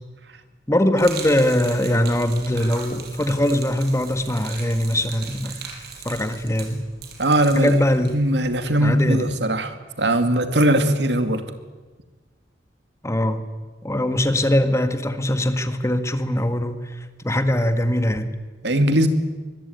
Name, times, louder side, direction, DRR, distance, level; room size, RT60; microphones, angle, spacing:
voice 1, 0.7-5.5 6.0-6.8 7.5-8.2 8.8-9.3 13.0-13.4 13.8-18.3, left 1 dB, 15° left, 9 dB, 1.7 m, -21 dB
Gurgling / Liquid, 1.0-8.6, right 5 dB, 65° right, 5.9 m, -39 dB
voice 2, 7.2-7.8 8.1-11.4 18.6-19.1, right 1 dB, 80° right, 8 dB, 2.4 m, -20 dB
24.0 x 22.0 x 9.5 m, 1.3 s
head